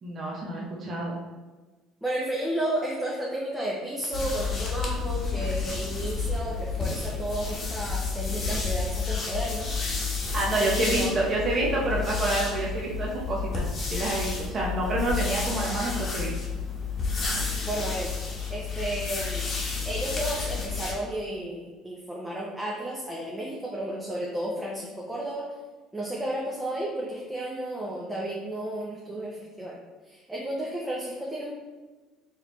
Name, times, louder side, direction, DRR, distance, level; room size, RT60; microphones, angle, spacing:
voice 1, 0.0-1.2 10.3-13.6 13.9-16.3, right 2 dB, 35° right, -4 dB, 0.9 m, -28 dB
voice 2, 2.0-11.2 17.6-18.1 18.5-19.5 19.9-25.5 25.9-29.8 30.0-31.5, right 1 dB, 5° right, -4 dB, 0.7 m, -33 dB
sound 1, 4.1-20.9, left 5 dB, 40° left, 1.1 m, -30 dB
4.7 x 3.3 x 3.1 m, 1.2 s
cardioid pair, 115°, 0 cm